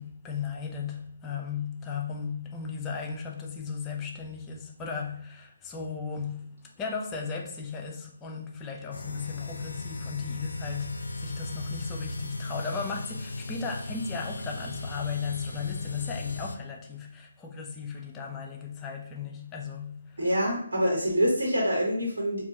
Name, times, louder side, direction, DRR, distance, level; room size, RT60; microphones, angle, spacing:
voice 1, 0.0-20.2, left 5 dB, 15° left, 0.4 m, -36 dB
sound 1, 8.9-16.6, left 2 dB, 80° left, 0.3 m, -37 dB
voice 2, 20.2-22.4, equal, 70° right, 1.2 m, -25 dB
3.7 x 2.3 x 2.7 m
figure-of-eight pair, 150°, 0 cm